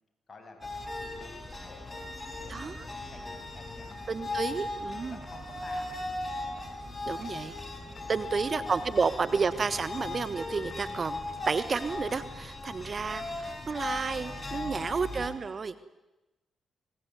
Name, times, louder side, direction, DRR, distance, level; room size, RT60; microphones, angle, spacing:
voice 1, 0.3-1.3 1.6-4.6 5.0-7.6 8.6-9.7 15.1-15.9, left 3 dB, 40° left, 4 dB, 7.7 m, -53 dB
sound 1, 0.6-15.3, left 2 dB, 20° left, 6.1 m, -38 dB
voice 2, 4.1-5.2 7.1-7.5 8.1-11.2 11.4-15.9, right 5 dB, 45° right, 14 dB, 1.4 m, -31 dB
25.5 x 20.5 x 9.4 m, 1.0 s
supercardioid pair, 55°, 0 cm